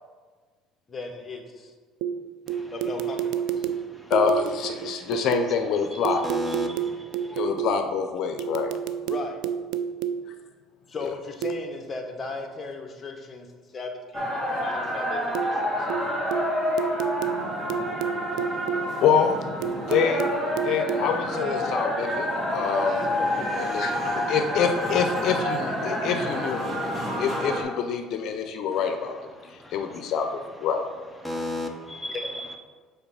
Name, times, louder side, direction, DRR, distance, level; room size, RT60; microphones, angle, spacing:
voice 1, 0.9-1.7 2.7-3.5 9.0-9.4 10.9-13.5 13.7-15.9 22.8-23.5 32.1-32.3, left 3 dB, 30° left, 1.0 m, -37 dB
sound 1, 2.0-5.6 6.0-7.9 8.4-10.3 11.4-11.7 15.3-15.6 15.9-19.0 19.6-21.1, right 8 dB, 75° right, 0.4 m, -30 dB
voice 2, 4.1-6.3 7.4-8.7 11.0-11.1 19.0-19.3 19.9-20.3 20.6-23.0 23.6-23.9 24.3-26.8 27.2-29.1 29.7-30.3 30.6-30.8, left 6 dB, 60° left, 0.6 m, -26 dB
voice 3, 5.9-6.9 7.2-7.4 29.6-29.7 31.2-32.5, left 1 dB, 5° right, 0.7 m, -33 dB
sound 2, 14.1-27.6, left 1 dB, 20° right, 1.9 m, -28 dB
5.6 x 4.1 x 5.5 m
cardioid pair, 110°, 0 cm